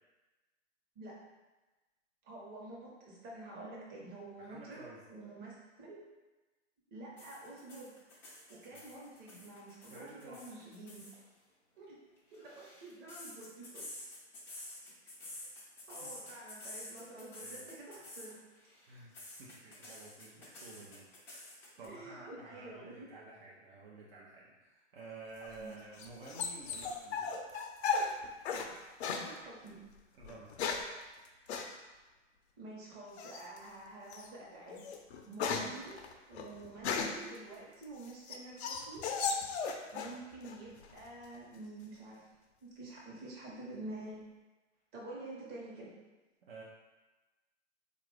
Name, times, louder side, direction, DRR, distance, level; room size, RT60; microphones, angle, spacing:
voice 1, 2.2-4.8 5.1-6.0 6.9-7.9 8.5-11.1 11.7-12.0 12.3-13.8 15.9-18.4 21.8-23.1 25.6-25.8 29.1-29.8 32.6-34.8 35.3-36.0 36.2-39.1 39.9-42.3 42.6-44.2 44.9-45.9, right 2 dB, 25° right, -4 dB, 1.0 m, -48 dB
voice 2, 4.4-5.0 8.7-8.8 9.5-9.6 9.9-10.7 16.0-16.1 17.4-17.7 18.9-19.1 19.4-21.4 21.8-27.4 30.1-30.5 46.4-46.6, right 3 dB, 50° right, -4 dB, 0.7 m, -52 dB
sound 1, 7.2-11.2 12.2-18.3 18.6-21.9, left 1 dB, 5° left, 0.3 m, -49 dB
sound 2, 25.4-28.7 29.0-29.3 30.2-31.0 31.5-31.7 33.2-33.6 34.1-34.3 34.7-37.3 37.8-40.2 40.4-41.1, left 5 dB, 65° left, 0.5 m, -36 dB
3.8 x 2.5 x 3.3 m, 1.2 s
hypercardioid pair, 125°, 36 cm